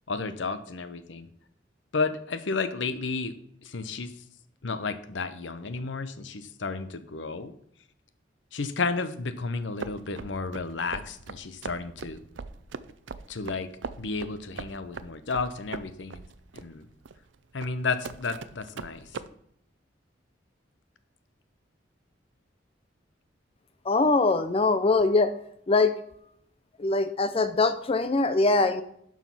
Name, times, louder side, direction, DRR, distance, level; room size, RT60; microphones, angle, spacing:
voice 1, 0.1-1.3 1.9-3.3 3.6-4.1 4.6-7.5 8.5-12.2 13.3-13.7 14.0-16.2 16.5-16.9 17.5-19.2, left 4 dB, 75° left, 11 dB, 0.8 m, -32 dB
sound 1, 9.8-19.3, right 4 dB, 90° right, 0.6 m, -40 dB
voice 2, 23.8-25.3 25.7-25.9 26.8-28.8, left 3 dB, 30° left, 11 dB, 0.6 m, -22 dB
12.0 x 4.8 x 5.6 m, 0.71 s
head